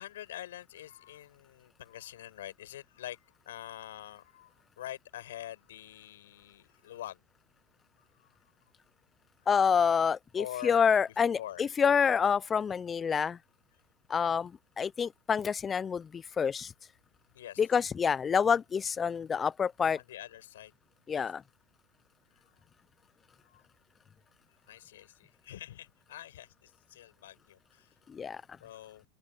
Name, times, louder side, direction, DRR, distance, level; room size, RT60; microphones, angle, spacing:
voice 1, 0.0-3.2 3.5-7.2 10.4-10.8 11.3-11.6 14.2-14.4 17.3-17.6 19.9-20.7 21.1-21.3 23.4-23.6 24.7-27.9 28.6-29.0, left 13 dB, 85° left, 7.0 m, -45 dB
voice 2, 9.5-13.4 14.1-14.5 14.8-16.7 17.6-20.0 21.1-21.4 28.1-28.4, left 6 dB, 25° left, 0.4 m, -27 dB
open air
hypercardioid pair, 105°, 0 cm